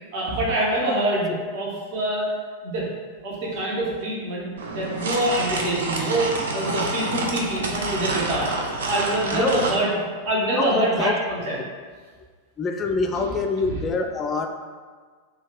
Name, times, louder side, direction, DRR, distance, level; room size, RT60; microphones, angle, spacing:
voice 1, 0.1-2.3 2.6-2.9 3.2-8.5 8.8-9.9 10.2-11.6 13.1-13.3, right 1 dB, 50° right, -5 dB, 0.9 m, -25 dB
sound 1, 4.6-9.8, right 3 dB, 65° right, 0.4 m, -28 dB
voice 2, 10.6-11.1 12.6-14.5, left 4 dB, 25° left, 4 dB, 0.3 m, -25 dB
2.9 x 2.3 x 3.6 m, 1.6 s
figure-of-eight pair, 90°, 0 cm